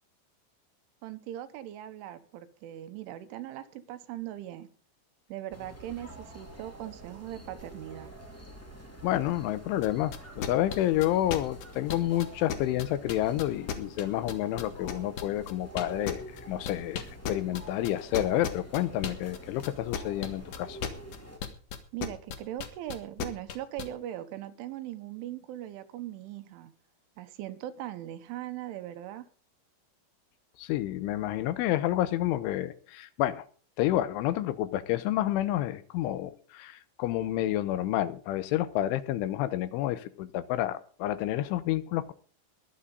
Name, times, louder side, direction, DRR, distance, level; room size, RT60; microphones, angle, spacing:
voice 1, 1.0-4.7 5.3-8.1 21.9-26.7 27.2-29.3, right 13 dB, 80° right, 11 dB, 3.5 m, -40 dB
sound 1, 5.5-21.4, right 1 dB, 10° left, 1.0 m, -47 dB
voice 2, 9.0-20.8 30.6-33.5 33.8-42.1, left 13 dB, 85° left, 14 dB, 3.3 m, -29 dB
sound 2, 9.8-23.9, left 8 dB, 60° left, 2.2 m, -35 dB
22.0 x 8.4 x 3.9 m, 0.41 s
omnidirectional pair, 5.5 m